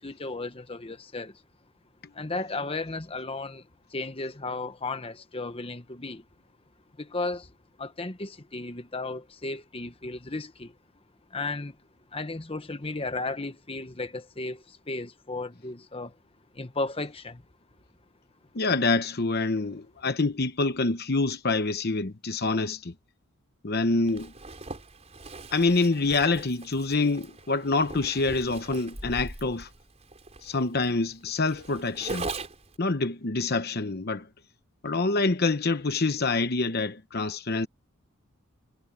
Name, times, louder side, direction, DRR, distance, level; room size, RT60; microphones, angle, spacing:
voice 1, 0.0-1.3 2.1-6.2 7.0-7.5 7.8-10.7 11.3-11.8 12.1-16.1 16.5-17.4, left 3 dB, 25° left, 1.2 m, -34 dB
voice 2, 18.5-22.9 23.6-24.3 25.5-29.7 30.4-32.3 32.8-34.3 34.8-37.7, left 3 dB, 50° left, 0.9 m, -26 dB
Zipper (clothing), 24.1-32.8, right 2 dB, 30° right, 4.7 m, -40 dB
head